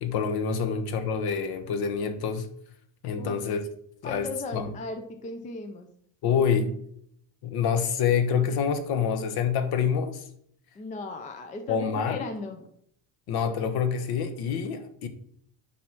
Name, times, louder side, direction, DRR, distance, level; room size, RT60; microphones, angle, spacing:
voice 1, 0.0-2.5 3.0-3.6 4.0-4.7 6.2-6.7 7.4-10.2 11.7-12.3 13.3-15.1, left 6 dB, 50° left, 9 dB, 1.1 m, -27 dB
voice 2, 4.0-5.9 6.3-6.4 10.8-12.7, left 3 dB, 15° left, 6 dB, 0.4 m, -37 dB
9.6 x 4.1 x 5.9 m, 0.67 s
cardioid pair, 175°, 48 cm